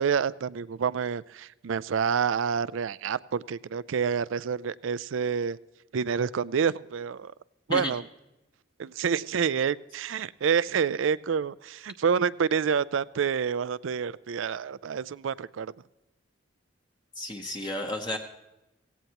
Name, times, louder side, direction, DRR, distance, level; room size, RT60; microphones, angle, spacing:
voice 1, 0.0-5.6 5.9-7.3 7.7-8.0 8.8-15.7, right 6 dB, 75° right, 19 dB, 0.4 m, -28 dB
voice 2, 17.2-18.2, left 1 dB, 20° left, 2 dB, 0.9 m, -32 dB
17.0 x 17.0 x 2.9 m, 0.98 s
head